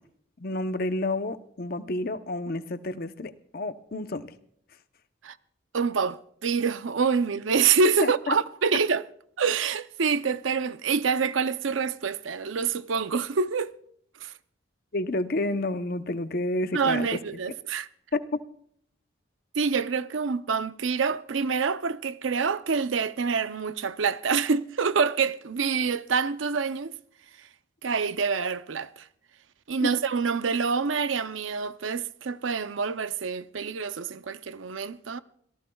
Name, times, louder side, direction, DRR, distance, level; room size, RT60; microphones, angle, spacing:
voice 1, 0.4-4.3 8.0-8.3 14.9-17.1 18.1-18.4 29.8-29.9, left 2 dB, 50° left, 0.8 m, -30 dB
voice 2, 5.7-9.0 9.4-13.7 14.2-14.3 16.7-17.9 19.6-26.9 27.8-29.0 29.7-35.2, right 5 dB, 85° right, 0.6 m, -26 dB
26.5 x 18.0 x 2.3 m
head